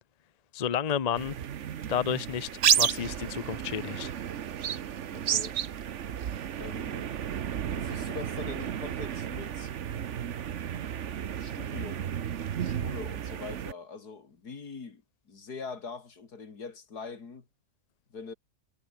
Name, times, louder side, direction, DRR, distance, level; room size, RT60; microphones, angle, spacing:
voice 1, 0.5-1.3 1.9-2.5 2.8-4.1, left 8 dB, 35° left, 0.6 m, -30 dB
sound 1, 1.2-13.7, right 9 dB, 55° right, 1.1 m, -32 dB
voice 2, 5.1-5.6 6.6-7.1 7.6-9.7 11.4-12.2 12.6-17.5 18.1-18.3, left 5 dB, 85° left, 3.1 m, -43 dB
omnidirectional pair, 1.6 m